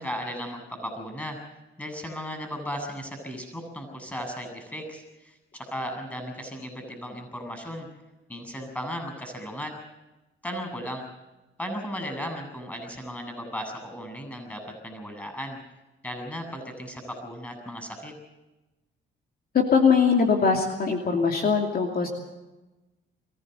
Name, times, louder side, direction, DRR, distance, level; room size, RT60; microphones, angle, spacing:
voice 1, 0.0-1.4 1.8-7.9 8.3-9.7 10.4-11.0 11.6-15.6 16.0-18.1, equal, 5° left, 7 dB, 7.4 m, -36 dB
voice 2, 19.5-22.1, left 5 dB, 50° left, 2 dB, 2.7 m, -21 dB
23.5 x 15.5 x 8.0 m, 1.1 s
cardioid pair, 90°, 20 cm